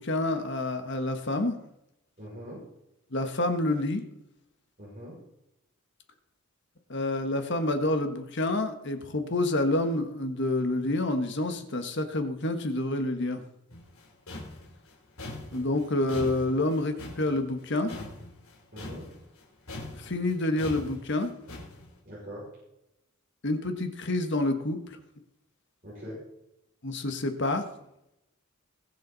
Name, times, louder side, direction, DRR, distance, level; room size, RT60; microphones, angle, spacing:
voice 1, 0.0-1.6 3.1-4.0 6.9-13.4 15.5-17.9 19.9-21.3 23.4-25.0 26.8-27.7, left 2 dB, 55° left, 7 dB, 1.5 m, -28 dB
voice 2, 2.2-2.6 4.8-5.1 18.7-19.0 22.0-22.4 25.8-26.2, equal, 40° right, -9 dB, 6.3 m, -42 dB
sound 1, 13.7-19.4 19.7-21.9, left 2 dB, 75° left, 3.8 m, -42 dB
21.5 x 7.6 x 4.1 m, 0.84 s
head